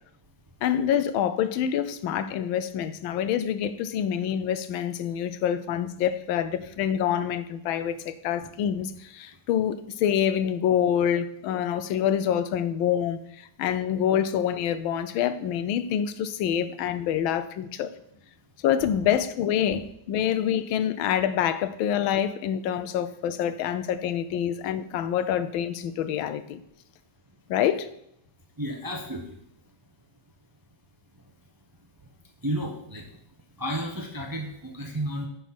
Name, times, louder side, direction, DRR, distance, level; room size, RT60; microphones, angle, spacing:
voice 1, 0.6-17.9 18.6-26.6 27.5-27.9, left 9 dB, 85° left, 1.4 m, -26 dB
voice 2, 28.6-29.4 32.4-33.1 33.6-35.3, equal, 20° right, 0.5 m, -32 dB
9.3 x 4.1 x 5.9 m
omnidirectional pair, 2.2 m